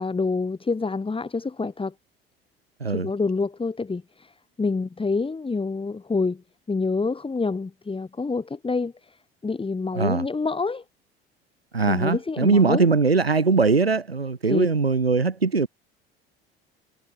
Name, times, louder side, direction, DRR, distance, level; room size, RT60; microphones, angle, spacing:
voice 1, 0.0-1.9 2.9-10.8 11.9-12.9 14.5-14.7, left 4 dB, 20° left, 4.4 m, -27 dB
voice 2, 2.8-3.1 9.9-10.2 11.7-15.7, right 4 dB, 90° right, 1.5 m, -21 dB
figure-of-eight pair, 65°, 30 cm